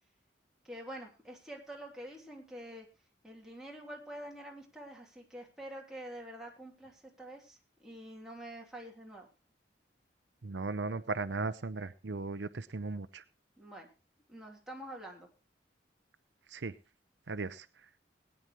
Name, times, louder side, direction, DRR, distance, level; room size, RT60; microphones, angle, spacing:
voice 1, 0.6-2.8 3.2-9.3 13.6-13.9 14.3-15.3, right 1 dB, 5° right, -2 dB, 3.0 m, -47 dB
voice 2, 10.4-13.2 16.5-16.7 17.3-17.7, right 3 dB, 85° right, 12 dB, 0.7 m, -37 dB
20.5 x 9.8 x 3.1 m, 0.27 s
head